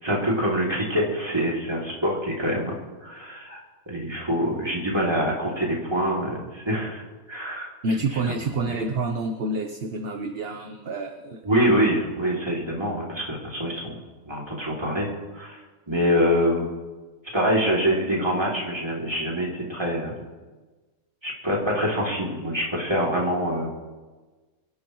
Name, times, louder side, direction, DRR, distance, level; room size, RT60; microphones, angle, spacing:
voice 1, 0.0-2.7 3.0-7.7 8.1-8.3 11.4-15.1 15.3-15.6 15.9-16.7 17.3-20.2 21.2-23.7, equal, 15° right, -3 dB, 2.8 m, -25 dB
voice 2, 7.8-11.4, right 2 dB, 50° right, 5 dB, 1.0 m, -28 dB
25.0 x 11.0 x 3.1 m, 1.3 s
omnidirectional pair, 1.5 m